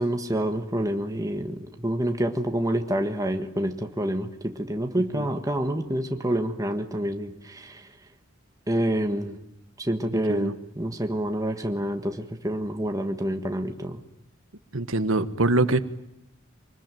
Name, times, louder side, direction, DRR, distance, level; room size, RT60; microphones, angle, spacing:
voice 1, 0.0-7.9 8.7-9.4 9.8-14.0, right 1 dB, 15° right, 5 dB, 1.6 m, -27 dB
voice 2, 10.1-10.5 14.7-15.8, right 2 dB, 75° right, 13 dB, 1.4 m, -24 dB
25.0 x 20.0 x 9.2 m, 0.85 s
head